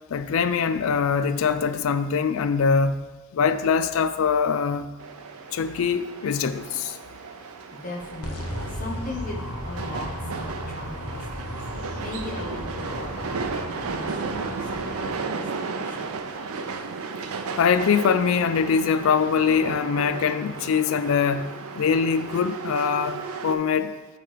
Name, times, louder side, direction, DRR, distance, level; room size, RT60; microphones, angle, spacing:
voice 1, 0.1-3.0 3.3-4.9 5.5-7.0 17.6-23.9, left 6 dB, 70° left, 0.4 m, -23 dB
sound 1, 5.0-23.6, right 4 dB, 85° right, 0.5 m, -34 dB
voice 2, 7.7-11.6 12.0-13.6 13.9-16.1, left 2 dB, 35° left, 0.9 m, -38 dB
sound 2, 8.2-15.1, equal, 85° left, 1.0 m, -35 dB
8.4 x 3.2 x 4.6 m
head